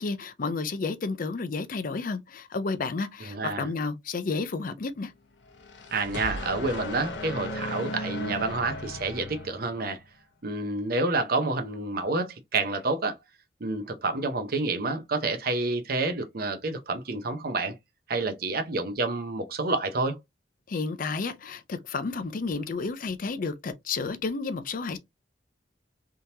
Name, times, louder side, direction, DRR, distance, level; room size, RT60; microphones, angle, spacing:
voice 1, 0.0-5.1 20.7-25.0, left 4 dB, 50° left, 0.5 m, -31 dB
voice 2, 3.3-3.7 5.9-10.0 10.4-13.2 13.6-17.7 18.1-20.2, right 3 dB, 55° right, 0.7 m, -29 dB
sound 1, 5.5-10.0, left 1 dB, 90° left, 0.8 m, -36 dB
3.5 x 2.9 x 2.7 m
head